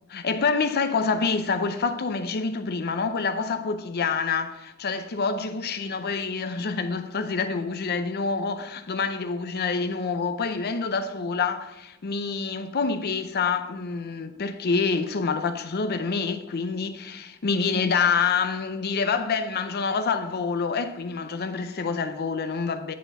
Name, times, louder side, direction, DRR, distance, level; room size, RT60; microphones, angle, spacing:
voice 1, 0.1-22.9, left 5 dB, 50° left, 0.6 m, -27 dB
10.5 x 4.3 x 5.5 m
head